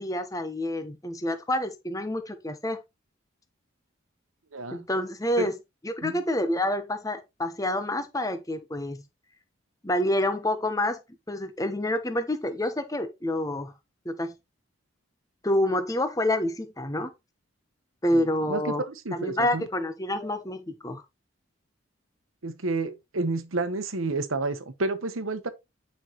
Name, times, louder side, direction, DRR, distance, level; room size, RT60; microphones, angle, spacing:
voice 1, 0.0-2.8 4.7-5.5 5.8-9.0 9.8-11.0 11.3-13.7 14.0-14.3 15.4-17.1 18.0-18.8 19.1-21.0, left 1 dB, 15° left, 1.0 m, -28 dB
voice 2, 4.5-4.8 5.4-5.5 6.0-6.2 18.1-19.6 22.4-25.5, right 2 dB, 85° right, 1.1 m, -30 dB
9.1 x 5.7 x 3.1 m
head